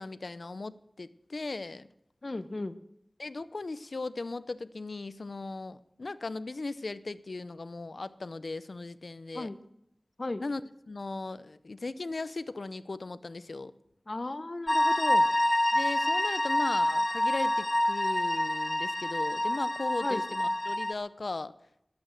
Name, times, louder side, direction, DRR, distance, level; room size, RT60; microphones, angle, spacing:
voice 1, 0.0-1.9 3.2-9.5 10.4-10.6 10.9-13.7 15.7-21.5, left 3 dB, 80° left, 15 dB, 0.6 m, -37 dB
voice 2, 2.2-2.8 9.3-9.6 10.2-10.4 14.1-15.2 20.0-20.2, left 2 dB, 55° left, 12 dB, 0.9 m, -35 dB
sound 1, 14.7-20.9, left 1 dB, 25° left, 0.6 m, -27 dB
14.0 x 11.0 x 6.4 m, 0.79 s
wide cardioid pair, 50°, 0 cm